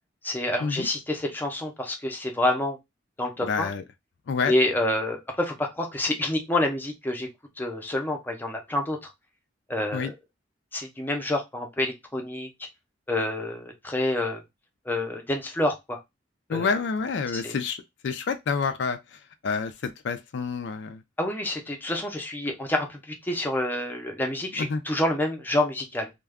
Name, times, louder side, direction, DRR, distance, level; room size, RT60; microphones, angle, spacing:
voice 1, 0.2-2.8 3.2-3.7 4.5-7.3 7.6-9.1 9.7-10.1 10.7-12.5 13.1-14.4 14.9-16.0 16.5-16.7 17.3-17.6 21.2-26.1, left 1 dB, 10° left, 0.5 m, -28 dB
voice 2, 3.4-3.8 4.3-4.5 9.9-10.1 16.5-21.0 24.6-24.8, left 5 dB, 65° left, 0.4 m, -28 dB
2.3 x 2.2 x 3.4 m
head